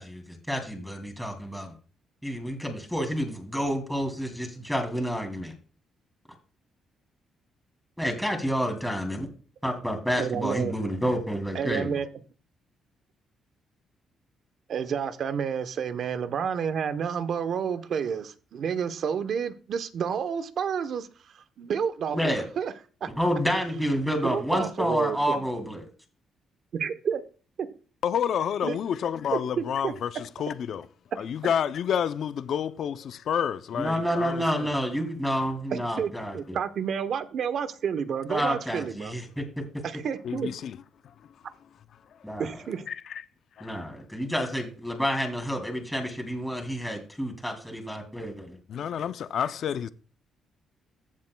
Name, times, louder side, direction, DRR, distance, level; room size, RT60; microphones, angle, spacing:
voice 1, 0.0-1.7 2.2-5.5 8.0-9.3 9.6-12.0 22.1-22.4 23.2-25.9 33.7-36.4 38.3-39.6 42.2-42.5 43.6-48.6, equal, ahead, 2.7 m, -29 dB
voice 2, 10.2-10.7 11.5-12.1 14.7-22.7 23.0-23.1 24.2-25.4 26.7-27.2 27.6-27.7 28.6-28.8 29.3-29.9 35.7-39.1 39.8-40.5 42.4-42.8, right 7 dB, 60° right, 0.9 m, -30 dB
voice 3, 28.0-30.8 31.2-34.7 40.2-40.8 42.9-43.2 43.6-43.7 48.7-49.9, left 8 dB, 65° left, 0.5 m, -29 dB
14.5 x 7.5 x 2.3 m
cardioid pair, 90°, 0 cm